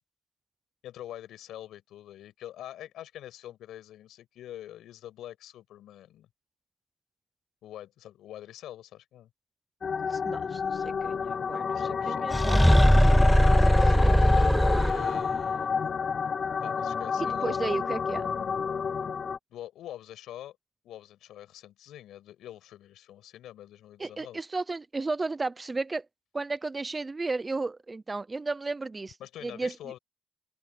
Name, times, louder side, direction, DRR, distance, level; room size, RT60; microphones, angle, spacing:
voice 1, 0.8-6.3 7.6-9.3 11.7-12.6 13.8-14.2 14.7-15.7 16.6-17.9 19.5-20.6 20.8-24.4 29.2-30.0, left 12 dB, 80° left, 6.3 m, -45 dB
sound 1, 9.8-19.4, left 6 dB, 50° left, 0.9 m, -30 dB
voice 2, 10.1-11.2 11.5-12.8 13.5-13.7 13.9-14.3 17.2-18.3 24.0-26.1 26.3-29.2 29.4-29.7, right 3 dB, 25° right, 0.7 m, -34 dB
sound 2, 12.3-15.3, equal, ahead, 0.3 m, -20 dB
open air
cardioid pair, 90°, 0 cm